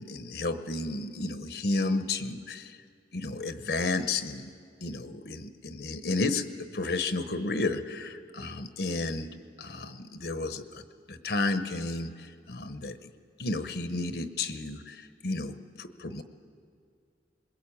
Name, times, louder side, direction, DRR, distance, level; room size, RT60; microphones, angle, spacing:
voice 1, 0.0-2.8 3.1-4.5 4.8-6.5 6.7-9.3 9.6-13.1 13.4-16.2, left 2 dB, 60° left, 10 dB, 1.0 m, -32 dB
22.0 x 21.5 x 8.7 m, 2.2 s
head